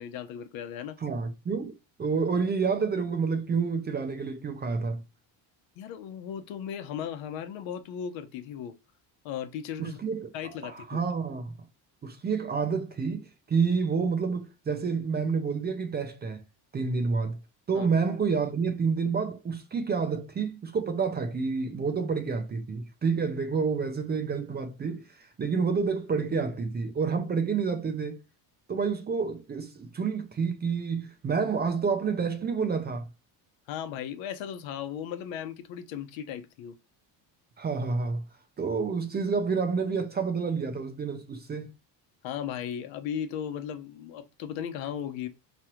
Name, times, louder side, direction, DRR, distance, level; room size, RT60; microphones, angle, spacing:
voice 1, 0.0-1.0 5.8-8.7 9.2-10.0 10.3-11.0 17.7-17.9 33.7-36.7 42.2-45.3, left 9 dB, 80° left, 0.9 m, -36 dB
voice 2, 1.0-1.7 2.0-5.0 9.8-11.5 12.0-16.4 16.7-17.4 17.7-28.2 28.7-33.1 37.6-38.2 38.6-41.7, right 5 dB, 20° right, 0.5 m, -29 dB
4.9 x 3.0 x 2.9 m
cardioid pair, 155°, 46 cm